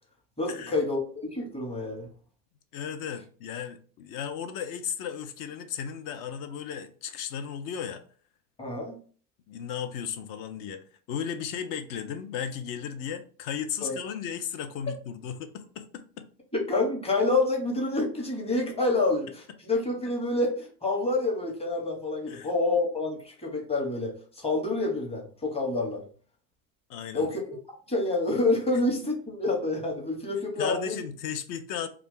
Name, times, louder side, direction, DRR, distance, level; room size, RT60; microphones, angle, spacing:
voice 1, 0.4-2.1 8.6-9.0 13.8-14.0 16.5-26.0 27.1-27.6 27.9-31.0, left 2 dB, 15° left, 1.0 m, -28 dB
voice 2, 2.7-8.0 9.5-16.3 22.3-22.5 26.9-27.3 30.6-31.9, left 8 dB, 45° left, 0.6 m, -35 dB
2.4 x 2.3 x 3.7 m
hypercardioid pair, 95°, 47 cm